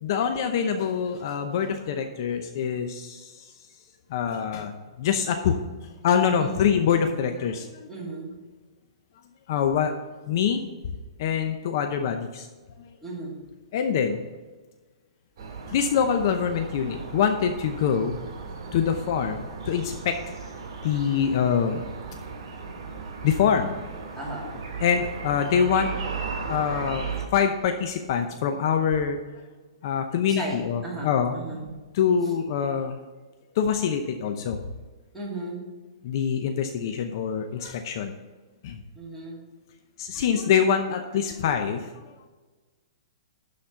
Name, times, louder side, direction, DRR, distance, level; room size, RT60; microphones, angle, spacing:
voice 1, 0.0-3.5 4.1-5.6 6.0-7.9 9.5-9.9 10.3-10.6 11.2-12.5 13.7-14.2 15.7-18.2 18.7-20.2 20.8-21.9 23.2-23.7 24.8-26.0 26.5-29.4 29.8-31.3 31.9-33.0 33.5-34.6 36.0-38.1 38.6-38.8 40.0-42.1, left 7 dB, 50° left, 6 dB, 0.7 m, -25 dB
voice 2, 6.3-6.7 7.9-8.3 13.0-13.4 24.1-24.6 30.3-31.7 35.1-35.6 38.9-39.4, right 2 dB, ahead, -7 dB, 2.8 m, -35 dB
sound 1, 15.4-27.3, right 5 dB, 55° right, 2.6 m, -36 dB
11.5 x 4.2 x 5.8 m, 1.3 s
hypercardioid pair, 155°, 3 cm